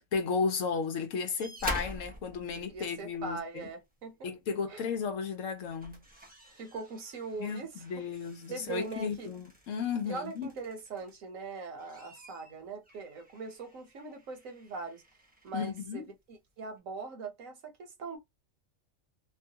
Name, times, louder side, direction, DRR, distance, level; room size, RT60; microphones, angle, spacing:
voice 1, 0.1-3.7 4.2-6.0 7.4-10.5 15.5-16.0, left 5 dB, 70° left, 1.0 m, -34 dB
sound 1, 1.4-3.4 4.9-5.1 5.5-11.3 11.7-15.9 16.8-16.9, right 1 dB, 10° right, 0.5 m, -46 dB
voice 2, 2.4-4.3 4.7-4.8 6.6-7.7 8.0-8.1 8.5-9.3 10.1-15.0 15.4-16.0 16.3-18.2, right 4 dB, 70° right, 1.3 m, -41 dB
3.0 x 2.3 x 2.7 m
omnidirectional pair, 1.4 m